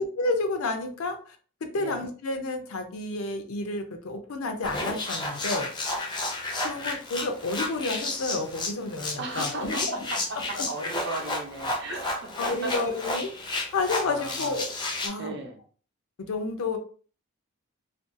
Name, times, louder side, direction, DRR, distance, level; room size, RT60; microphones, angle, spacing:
voice 1, 0.0-1.4 1.7-5.7 6.6-10.1 10.5-10.9 11.9-12.0 12.4-13.3 13.7-14.7 15.0-15.4 16.3-16.8, left 3 dB, 85° left, 6 dB, 0.5 m, -30 dB
sound 1, 4.6-15.1, left 2 dB, 20° left, 0.4 m, -32 dB
voice 2, 9.2-10.2 10.5-12.7 14.0-14.6 15.2-15.6, right 3 dB, 55° right, 2 dB, 0.6 m, -36 dB
2.5 x 2.2 x 2.5 m, 0.42 s
head